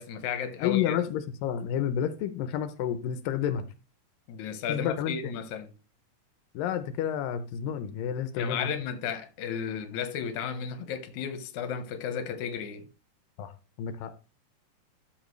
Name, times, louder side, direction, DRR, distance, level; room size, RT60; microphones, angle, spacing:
voice 1, 0.0-1.0 4.3-5.7 8.4-12.8, left 7 dB, 70° left, 2.4 m, -34 dB
voice 2, 0.6-3.7 4.7-5.3 6.5-8.7 13.4-13.5 13.8-14.1, left 9 dB, 85° left, 2.4 m, -30 dB
13.0 x 7.5 x 3.2 m
omnidirectional pair, 3.9 m